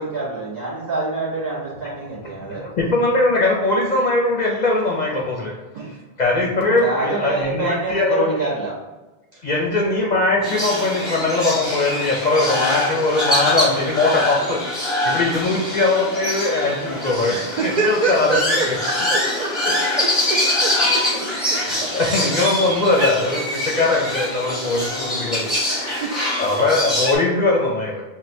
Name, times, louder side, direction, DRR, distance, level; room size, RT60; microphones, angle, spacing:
voice 1, 0.0-2.6 6.8-8.7, right 3 dB, 20° right, -7 dB, 1.5 m, -26 dB
voice 2, 2.2-5.5 6.2-8.4 9.4-14.6 15.0-18.8 19.3-19.4 21.3-28.0, left 2 dB, 50° left, -2 dB, 0.6 m, -21 dB
sound 1, 10.4-27.1, left 1 dB, ahead, 0.9 m, -24 dB
voice 3, 17.3-19.5 20.0-21.6 26.0-26.1, right 3 dB, 55° right, -1 dB, 0.5 m, -26 dB
5.9 x 2.1 x 2.6 m, 1.2 s
omnidirectional pair, 1.0 m